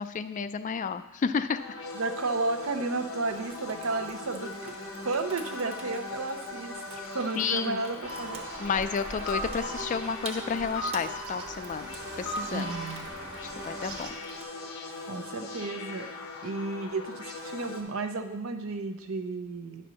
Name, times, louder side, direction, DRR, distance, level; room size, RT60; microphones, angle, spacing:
voice 1, 0.0-1.6 7.4-7.8 8.6-11.9 12.2-12.7 13.6-14.1, left 5 dB, 40° left, 11 dB, 0.4 m, -31 dB
sound 1, 1.5-17.8, left 3 dB, 85° left, 1.2 m, -40 dB
voice 2, 1.9-8.4 12.5-13.1 15.0-16.1 16.4-19.9, right 3 dB, 80° right, 7 dB, 0.8 m, -33 dB
Water tap faucet / Sink (filling or washing), 3.3-14.4, right 3 dB, 30° right, 1.0 m, -48 dB
sound 2, 8.0-14.1, right 1 dB, 50° right, 1.5 m, -39 dB
10.0 x 4.4 x 6.3 m, 0.98 s
head